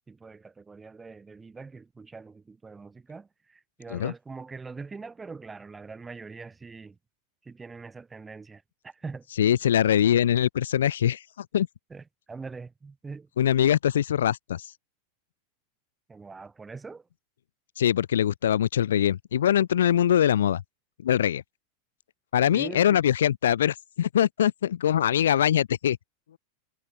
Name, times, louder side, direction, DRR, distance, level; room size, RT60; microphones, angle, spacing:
voice 1, 0.1-7.0 7.4-9.3 11.9-13.3 16.1-17.1 22.5-23.0, right 4 dB, 15° right, 1.3 m, -43 dB
voice 2, 9.4-11.7 13.4-14.7 17.8-20.6 21.0-21.4 22.3-26.0, left 10 dB, 65° left, 0.4 m, -23 dB
figure-of-eight pair, 90°, 0 cm